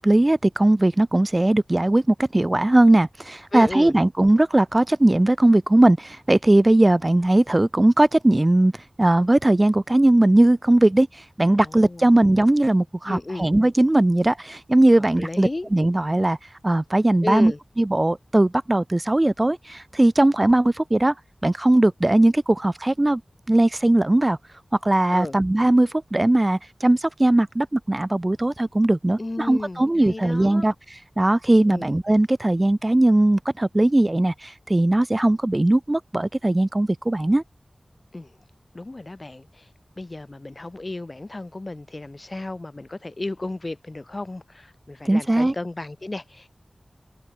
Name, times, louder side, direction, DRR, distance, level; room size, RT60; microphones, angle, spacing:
voice 1, 0.0-8.7 9.0-16.4 16.6-17.5 17.8-21.1 21.4-23.2 23.5-24.4 24.8-30.7 31.2-37.4 45.1-45.5, right 1 dB, 30° right, 0.5 m, -19 dB
voice 2, 3.5-4.0 11.5-12.1 13.1-13.5 14.9-15.7 17.2-17.6 25.1-25.4 29.2-30.7 31.7-32.0 38.1-38.4 38.7-39.7 40.0-46.5, left 2 dB, 45° left, 2.3 m, -33 dB
open air
wide cardioid pair, 55°, 0 cm